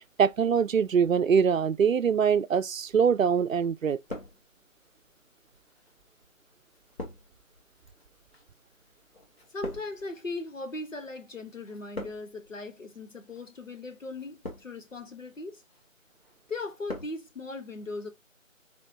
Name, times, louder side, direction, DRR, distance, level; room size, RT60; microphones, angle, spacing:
voice 1, 0.2-4.0, right 7 dB, 75° right, 0.5 m, -23 dB
sound 1, 2.9-3.5 3.8-4.9 5.6-11.2 11.5-12.5 13.2-13.5 14.1-15.0 15.4-15.8 16.2-17.2 17.4-17.5, left 1 dB, 50° left, 1.8 m, -44 dB
voice 2, 9.5-15.6 16.5-18.1, left 3 dB, 75° left, 1.2 m, -38 dB
3.7 x 3.6 x 2.7 m
figure-of-eight pair, 170°, 40 cm